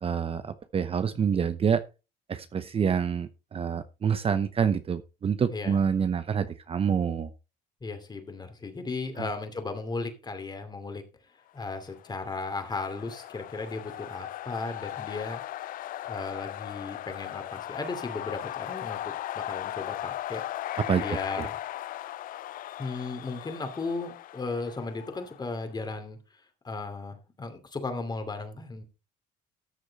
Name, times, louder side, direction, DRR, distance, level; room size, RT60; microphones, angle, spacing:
voice 1, 0.0-1.8 2.3-7.3 20.9-21.0 21.4-21.5, right 7 dB, 35° right, 12 dB, 0.8 m, -27 dB
voice 2, 5.5-5.8 7.8-11.0 11.5-15.4 16.1-20.4 21.0-21.6 22.8-28.8, left 3 dB, 25° left, 7 dB, 2.8 m, -36 dB
sound 1, 11.9-25.6, left 13 dB, 55° left, 0.4 m, -38 dB
13.5 x 6.5 x 4.1 m, 0.30 s
cardioid pair, 110°, 17 cm